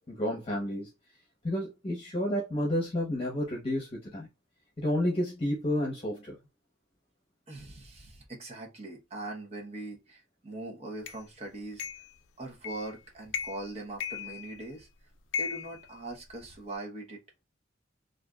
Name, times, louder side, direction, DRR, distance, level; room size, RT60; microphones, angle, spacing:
voice 1, 0.1-0.9 1.4-4.3 4.8-6.4, left 1 dB, 30° left, 0.9 m, -30 dB
voice 2, 7.5-11.9 12.4-14.9 15.4-17.4, right 2 dB, 35° right, 0.9 m, -41 dB
sound 1, 11.1-11.2 11.8-12.1 12.6-12.9 13.3-13.7 14.0-14.8 15.3-16.6, left 7 dB, 80° left, 0.4 m, -37 dB
3.2 x 2.5 x 2.3 m
head